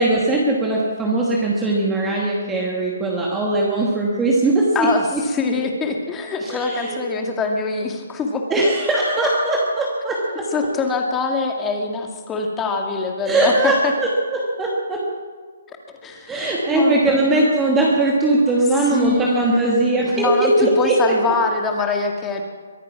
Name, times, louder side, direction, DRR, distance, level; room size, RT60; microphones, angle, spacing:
voice 1, 0.0-5.2 6.4-7.0 8.5-10.5 13.3-15.0 16.3-20.9, right 2 dB, 10° right, -3 dB, 2.4 m, -20 dB
voice 2, 4.8-8.4 10.5-13.9 15.7-15.8 16.0-16.4 16.7-17.5 18.9-19.8 20.1-22.4, left 4 dB, 15° left, 2 dB, 2.1 m, -24 dB
23.0 x 9.9 x 6.0 m, 1.5 s
figure-of-eight pair, 140°, 0 cm